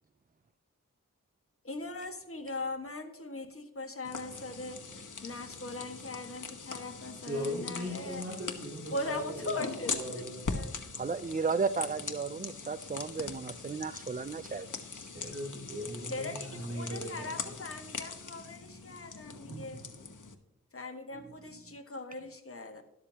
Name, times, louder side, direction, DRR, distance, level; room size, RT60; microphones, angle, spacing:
voice 1, 1.6-8.2 8.9-10.8 16.1-19.9 20.7-22.8, left 2 dB, 40° left, 4 dB, 1.7 m, -40 dB
sound 1, 4.0-20.3, left 4 dB, 65° left, 1.3 m, -42 dB
voice 2, 7.2-10.5 14.9-17.5, equal, 45° right, -4 dB, 3.1 m, -39 dB
voice 3, 11.0-14.7 19.5-19.6, right 4 dB, 25° right, 13 dB, 0.5 m, -34 dB
12.5 x 12.0 x 2.9 m, 0.88 s
wide cardioid pair, 85°, 33 cm